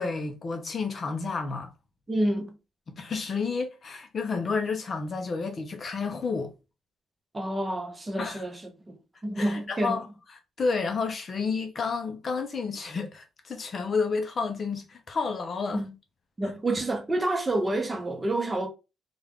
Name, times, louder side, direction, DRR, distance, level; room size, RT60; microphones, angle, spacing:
voice 1, 0.0-1.7 2.9-6.5 8.2-8.4 9.4-10.0 10.6-15.8, left 4 dB, 35° left, 0.5 m, -30 dB
voice 2, 2.1-2.6 7.3-8.6 8.9-9.0 9.2-10.0 15.7-15.9 16.4-18.7, right 1 dB, 15° right, 0.6 m, -28 dB
3.4 x 2.2 x 3.4 m
cardioid pair, 145°, 0 cm